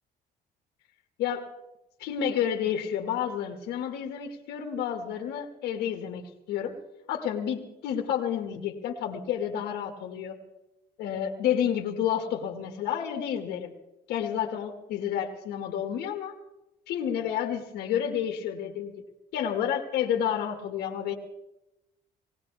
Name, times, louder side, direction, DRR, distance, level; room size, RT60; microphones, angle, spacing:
voice 1, 1.2-1.5 2.0-6.2 6.5-6.8 7.1-10.4 11.0-13.7 14.1-16.3 16.9-19.0 19.3-21.1, left 9 dB, 85° left, 2 dB, 2.0 m, -30 dB
20.0 x 18.5 x 3.5 m, 0.93 s
cardioid pair, 110°, 17 cm